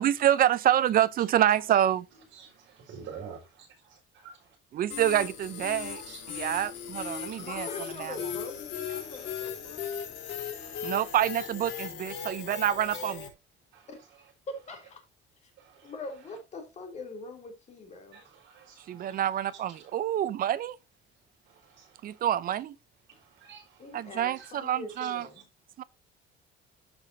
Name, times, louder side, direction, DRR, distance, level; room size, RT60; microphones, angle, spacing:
voice 1, 0.0-2.1 4.7-6.0 6.3-7.7 8.0-8.1 10.8-13.3 18.9-20.8 22.0-22.7 23.9-25.3 25.8-25.9, right 11 dB, 45° right, 0.6 m, -27 dB
voice 2, 2.8-4.5 5.9-6.7 7.1-7.5 8.9-9.4 10.6-11.0 13.7-13.9 15.6-15.9 18.1-19.4 19.8-19.9 21.5-22.2 23.1-23.8 24.4-24.5 25.0-25.1, right 6 dB, 60° right, 4.8 m, -49 dB
sound 1, 4.9-13.3, left 7 dB, 65° left, 3.7 m, -37 dB
voice 3, 7.4-9.9 13.9-14.0 14.5-15.0 15.4-15.5 15.8-18.2 23.8-25.5, left 2 dB, 35° left, 3.1 m, -42 dB
14.0 x 5.1 x 2.7 m
cardioid pair, 170°, 21 cm